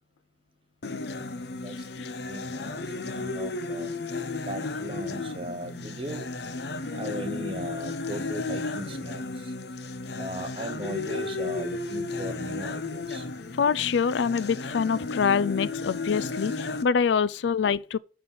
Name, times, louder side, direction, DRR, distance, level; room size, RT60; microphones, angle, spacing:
sound 1, 0.8-16.8, left 3 dB, 65° left, 0.8 m, -34 dB
voice 1, 1.6-2.8 3.2-3.9 4.5-6.2 6.9-9.2 10.2-13.2, right 1 dB, 30° right, 1.0 m, -38 dB
voice 2, 13.6-18.0, left 6 dB, 85° left, 0.4 m, -25 dB
9.2 x 3.9 x 6.7 m
head